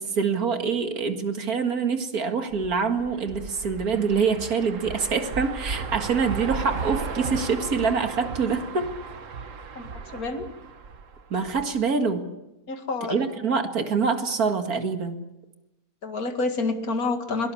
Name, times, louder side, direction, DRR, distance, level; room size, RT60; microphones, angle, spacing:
voice 1, 0.0-8.9 11.3-12.3 13.1-15.2, right 5 dB, 80° right, 6 dB, 2.4 m, -25 dB
sound 1, 2.5-11.8, right 5 dB, 60° right, 1.6 m, -35 dB
voice 2, 9.8-10.5 12.7-13.2 16.0-17.5, left 3 dB, 75° left, 6 dB, 2.5 m, -28 dB
22.5 x 18.5 x 8.5 m, 0.99 s
omnidirectional pair, 1.5 m